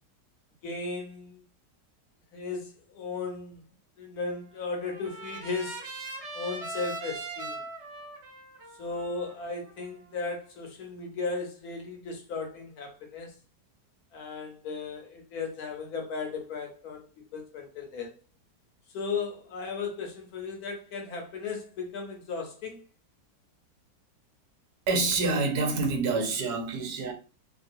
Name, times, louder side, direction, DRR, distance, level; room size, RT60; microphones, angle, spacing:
voice 1, 0.6-1.4 2.3-3.6 4.0-5.9 6.3-7.7 8.7-13.4 14.1-18.2 18.9-22.9, left 4 dB, 70° left, 1.1 m, -36 dB
Trumpet, 4.2-10.4, right 2 dB, 55° right, 0.8 m, -41 dB
voice 2, 24.9-27.1, right 3 dB, 70° right, 1.2 m, -27 dB
3.0 x 2.3 x 2.6 m
omnidirectional pair, 1.8 m